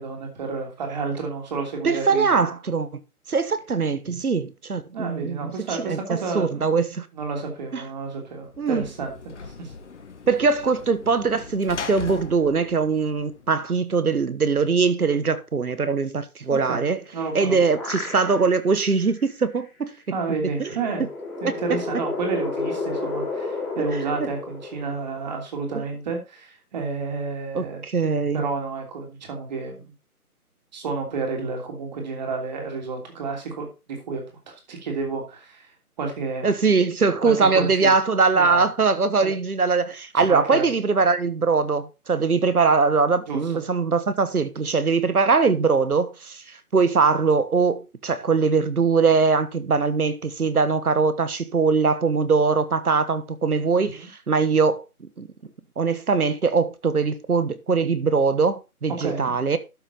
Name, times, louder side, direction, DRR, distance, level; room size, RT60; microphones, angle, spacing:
voice 1, 0.0-2.4 4.9-6.7 7.1-9.2 9.5-9.7 16.5-16.8 17.1-17.6 20.1-21.0 21.4-27.8 28.3-29.8 30.7-34.2 34.7-35.7 36.0-36.5 37.2-37.9 38.3-38.6 39.2-39.3 40.1-40.7 43.3-43.6 53.8-54.1 59.0-59.3, right 4 dB, 30° right, 3.0 m, -30 dB
voice 2, 1.8-3.0 3.3-7.1 7.7-7.8 8.6-8.9 10.3-17.0 17.3-19.9 20.6-20.7 21.0-21.1 21.4-21.8 25.7-25.8 27.5-28.4 36.4-55.3 55.8-59.6, right 4 dB, 75° right, 1.5 m, -22 dB
Sliding door / Slam, 8.4-13.8, left 5 dB, 50° left, 1.6 m, -40 dB
sound 1, 17.1-18.7 19.2-19.3 20.5-25.3, left 3 dB, ahead, 1.6 m, -31 dB
12.0 x 6.4 x 3.9 m
figure-of-eight pair, 155°, 45 cm